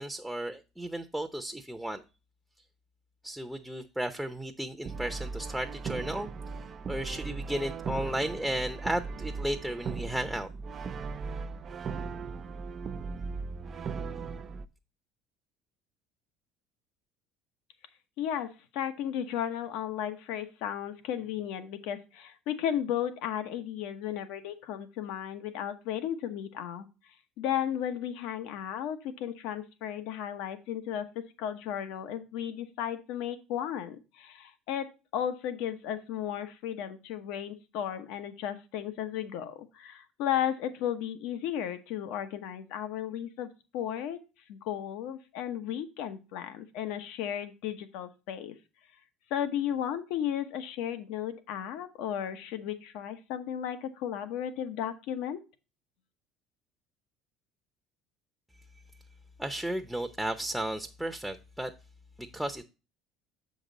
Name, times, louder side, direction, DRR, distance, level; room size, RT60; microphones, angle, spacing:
voice 1, 0.0-2.0 3.2-6.3 6.9-10.5 59.4-61.7 62.2-62.6, right 1 dB, 5° right, 6 dB, 0.8 m, -34 dB
Brass instrument, 4.8-14.7, right 5 dB, 45° right, 0.5 m, -38 dB
voice 2, 18.2-26.9 27.4-44.2 44.5-48.5 49.3-55.4, left 10 dB, 70° left, 9 dB, 1.0 m, -34 dB
7.3 x 5.2 x 4.0 m, 0.30 s
hypercardioid pair, 75°, 0 cm